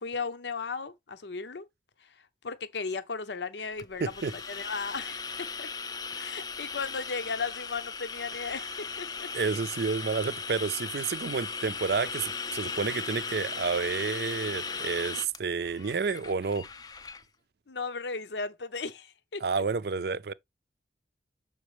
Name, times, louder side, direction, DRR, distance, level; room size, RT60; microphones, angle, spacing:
voice 1, 0.0-1.7 2.0-2.1 2.4-4.1 4.5-5.7 6.2-9.3 17.7-19.6, left 4 dB, 85° left, 0.7 m, -36 dB
sound 1, 3.8-17.2, left 5 dB, 20° left, 0.4 m, -37 dB
voice 2, 4.0-4.3 6.1-6.3 9.3-16.7 19.4-20.3, right 5 dB, 65° right, 0.4 m, -30 dB
7.2 x 5.4 x 3.2 m
head